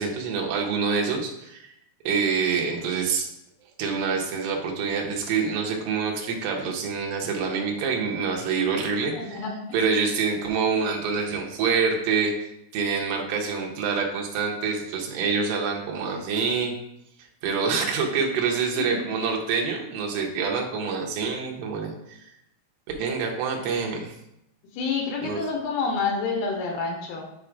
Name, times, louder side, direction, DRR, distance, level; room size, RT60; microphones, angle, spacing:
voice 1, 0.0-1.6 2.0-3.3 3.8-9.4 9.7-12.3 12.7-16.8 17.4-22.2 23.0-24.1 25.2-25.4, right 5 dB, 75° right, 1 dB, 2.7 m, -26 dB
voice 2, 9.1-9.6 18.7-19.0 24.7-27.2, left 4 dB, 80° left, 2 dB, 2.9 m, -28 dB
7.9 x 3.2 x 5.0 m, 0.82 s
omnidirectional pair, 4.8 m